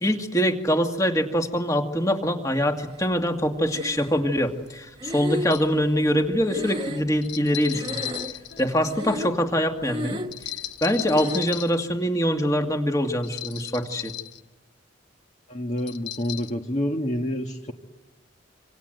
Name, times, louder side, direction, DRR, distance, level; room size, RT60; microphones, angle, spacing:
voice 1, 0.0-8.0 8.6-10.2 10.8-14.1, equal, 15° left, 4 dB, 2.2 m, -24 dB
Breathing, 3.7-4.4 5.0-7.5 7.7-8.5 8.9-9.5 9.8-10.5 11.0-11.5, equal, 25° right, 1.6 m, -34 dB
sound 1, 4.5-4.6 5.4-5.7 7.2-9.0 10.3-11.8 13.2-14.4 15.8-16.5, left 12 dB, 60° left, 1.4 m, -35 dB
voice 2, 15.5-17.7, equal, 35° left, 3 dB, 1.6 m, -28 dB
27.5 x 26.5 x 7.9 m, 1.1 s
head